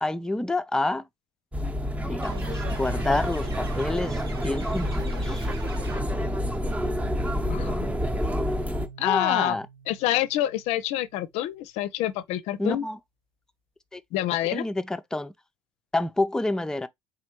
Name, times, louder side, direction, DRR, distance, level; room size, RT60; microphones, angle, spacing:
voice 1, 0.0-1.0 2.1-5.5 9.0-9.7 12.6-13.0 13.9-14.0 14.5-15.3 15.9-16.9, left 2 dB, 5° left, 0.5 m, -28 dB
sound 1, 1.5-8.9, equal, 10° right, 0.9 m, -28 dB
sound 2, 2.2-6.4, right 3 dB, 90° right, 1.0 m, -42 dB
voice 2, 7.5-7.9 9.0-9.6 9.9-12.9 14.1-14.7, left 14 dB, 60° left, 0.5 m, -27 dB
sound 3, 8.8-12.0, right 6 dB, 70° right, 1.8 m, -51 dB
4.2 x 3.7 x 2.9 m
figure-of-eight pair, 55°, 12 cm